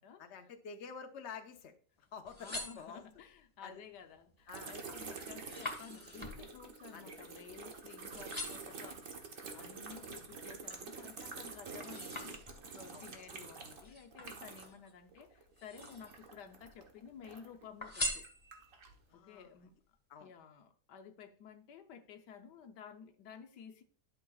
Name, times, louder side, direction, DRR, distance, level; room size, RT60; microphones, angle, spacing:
voice 1, 0.2-1.7 2.1-3.0 3.6-3.8 4.5-4.8 6.9-7.1 9.6-9.7 12.9-13.1 19.1-19.5 20.1-20.3, left 6 dB, 50° left, 1.1 m, -49 dB
sound 1, 2.1-3.4 4.0-4.4 4.7-7.8 8.1-8.8 9.4-10.9 11.3-12.9 13.8-14.9 15.5-16.3 16.6-17.3 17.8-18.9 19.4-19.5, left 1 dB, 20° left, 1.4 m, -44 dB
voice 2, 2.4-9.0 9.5-12.4 12.7-18.2 19.1-19.7 20.2-23.8, left 7 dB, 80° left, 1.4 m, -53 dB
sound 2, 4.5-14.9 15.1-17.6 18.2-19.0, right 4 dB, 55° right, 1.5 m, -48 dB
11.5 x 6.6 x 2.3 m
omnidirectional pair, 1.8 m